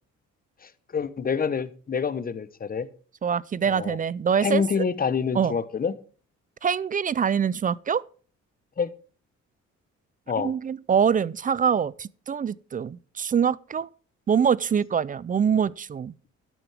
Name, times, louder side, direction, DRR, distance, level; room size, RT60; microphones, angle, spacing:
voice 1, 0.6-2.9 3.6-4.0 4.4-5.9 8.8-8.9 10.3-10.5, left 6 dB, 30° left, 0.9 m, -27 dB
voice 2, 3.2-4.9 5.3-5.6 6.6-8.0 10.4-13.9 14.3-16.1, right 7 dB, 30° right, 0.4 m, -24 dB
12.0 x 9.2 x 3.4 m
cardioid pair, 90°, 30 cm